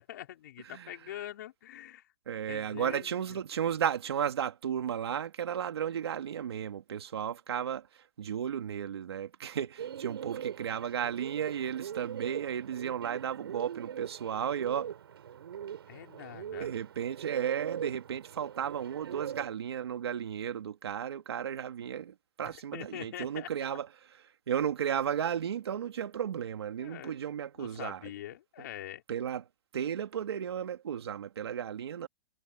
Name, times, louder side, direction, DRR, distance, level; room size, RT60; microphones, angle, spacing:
voice 1, 0.0-2.1 2.5-3.4 15.9-16.7 22.4-23.8 26.8-27.2 27.5-29.0, left 13 dB, 45° left, 4.4 m, -44 dB
voice 2, 2.3-7.9 8.2-14.9 16.6-23.9 24.5-28.0 29.1-29.4 29.7-32.1, right 9 dB, 90° right, 2.5 m, -34 dB
Bird, 9.8-19.5, right 9 dB, 75° right, 7.6 m, -41 dB
hypercardioid pair, 175°, 13 cm